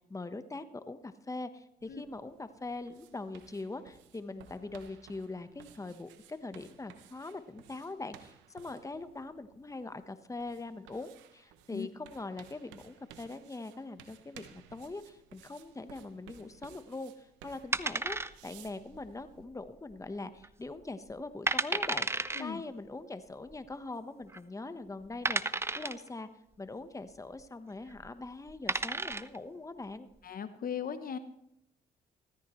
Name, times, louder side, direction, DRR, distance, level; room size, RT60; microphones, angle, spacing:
voice 1, 0.1-18.2 18.4-26.3 26.6-30.1, left 3 dB, 15° left, 11 dB, 1.1 m, -42 dB
sound 1, 1.8-19.4, right 9 dB, 90° right, 1.1 m, -58 dB
sound 2, 17.7-18.7 18.9-19.0 19.7-20.1 20.4-20.5 21.1-21.2 21.5-22.4 23.5-23.6 24.3-24.4 25.3-26.1 27.9-28.1 28.5-29.4, right 2 dB, 15° right, 0.6 m, -32 dB
voice 2, 30.2-31.2, left 7 dB, 50° left, 11 dB, 0.9 m, -38 dB
16.5 x 14.5 x 3.2 m, 0.79 s
supercardioid pair, 60°, 18 cm